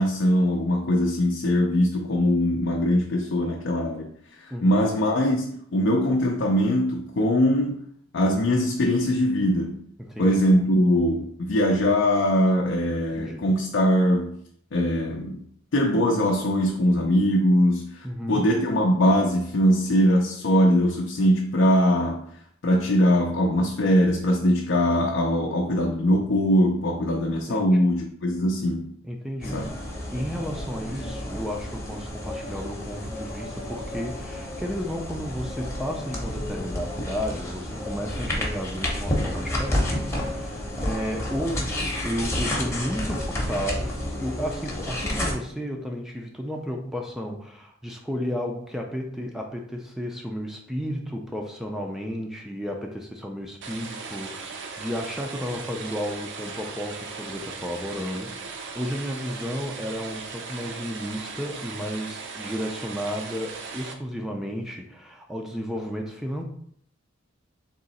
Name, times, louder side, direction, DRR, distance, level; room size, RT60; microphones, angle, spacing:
voice 1, 0.0-4.1 4.4-7.8 8.1-9.9 10.2-14.3 14.7-15.4 15.7-22.2 22.6-28.9 29.5-29.6, equal, 60° left, 0.5 m, -22 dB
voice 2, 4.5-4.8 10.0-10.5 13.1-13.5 18.0-18.5 27.5-27.8 29.1-29.7 30.1-66.4, equal, ahead, 0.4 m, -33 dB
sound 1, 29.4-45.3, left 1 dB, 15° left, 0.8 m, -30 dB
sound 2, 53.6-63.9, right 4 dB, 60° right, 0.5 m, -38 dB
3.7 x 2.9 x 4.1 m
head